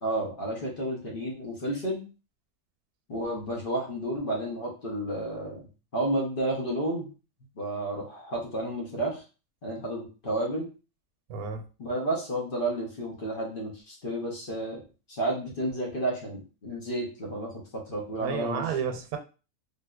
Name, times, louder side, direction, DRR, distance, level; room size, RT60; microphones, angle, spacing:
voice 1, 0.0-2.0 3.1-5.7 5.9-7.1 7.6-9.2 9.6-10.7 11.8-14.8 15.1-17.5 17.9-18.7, right 1 dB, 40° left, -2 dB, 1.0 m, -31 dB
voice 2, 11.3-11.6 18.2-19.2, right 6 dB, 85° right, 5 dB, 1.1 m, -31 dB
3.6 x 2.7 x 2.3 m, 0.33 s
omnidirectional pair, 1.6 m